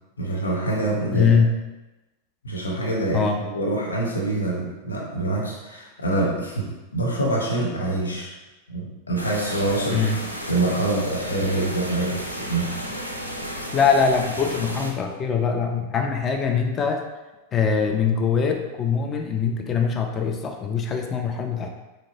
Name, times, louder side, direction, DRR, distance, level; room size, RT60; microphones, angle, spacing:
voice 1, 0.2-1.4 2.4-8.3 8.7-10.1 10.5-12.8, right 2 dB, 75° left, -3 dB, 0.9 m, -25 dB
voice 2, 1.1-1.6 3.1-3.4 9.9-10.2 12.9-13.0 13.7-17.0 17.5-21.7, left 6 dB, 25° left, 3 dB, 0.4 m, -22 dB
sound 1, 9.2-14.9, equal, 90° right, 0.4 m, -33 dB
3.9 x 3.2 x 2.6 m, 1.1 s
figure-of-eight pair, 90°, 0 cm